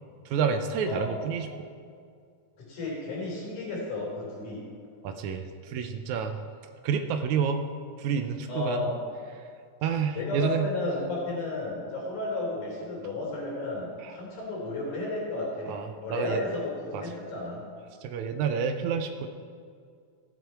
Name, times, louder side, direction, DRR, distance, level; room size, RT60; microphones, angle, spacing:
voice 1, 0.3-1.7 5.0-6.4 6.8-7.6 8.0-8.8 9.8-10.7 14.0-14.1 15.7-16.4 16.9-17.0 18.0-19.3, right 6 dB, 75° right, 7 dB, 1.9 m, -29 dB
voice 2, 0.8-1.2 2.6-4.7 8.5-8.9 10.1-17.6, left 2 dB, 80° left, -4 dB, 5.0 m, -33 dB
15.0 x 7.9 x 4.6 m, 2.2 s
omnidirectional pair, 3.6 m